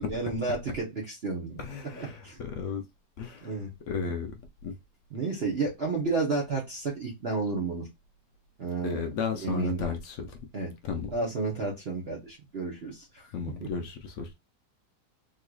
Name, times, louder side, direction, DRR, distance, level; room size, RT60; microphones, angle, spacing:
voice 1, 0.0-1.6 2.0-2.4 3.4-3.7 5.1-7.9 8.6-9.0 9.3-9.9 10.5-10.7 11.1-13.3 13.6-13.7, right 3 dB, 45° right, 0.9 m, -31 dB
voice 2, 1.6-2.8 3.2-3.5 3.9-4.3 4.6-4.7 8.8-10.3 10.8-11.1 13.3-14.3, left 5 dB, 75° left, 0.7 m, -33 dB
3.7 x 3.0 x 2.3 m
omnidirectional pair, 1.9 m